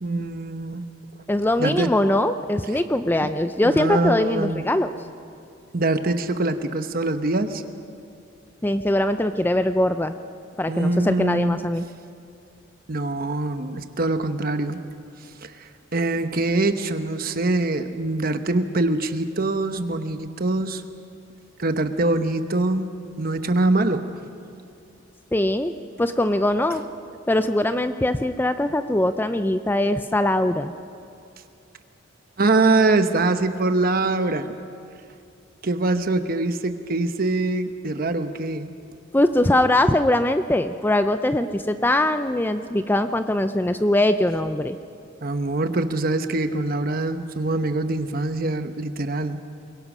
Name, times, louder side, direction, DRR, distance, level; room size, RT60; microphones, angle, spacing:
voice 1, 0.0-0.8 1.6-1.9 3.6-4.6 5.7-7.6 10.7-11.6 12.9-14.8 15.4-20.8 21.6-22.9 23.2-24.1 32.4-34.5 35.6-38.7 45.2-49.4, right 2 dB, 45° right, 9 dB, 1.0 m, -23 dB
voice 2, 1.3-4.9 8.6-10.1 10.6-11.9 25.3-25.7 26.0-26.8 27.3-30.7 39.1-44.8, left 1 dB, 10° left, 10 dB, 0.5 m, -21 dB
22.5 x 22.5 x 6.1 m, 2.5 s
head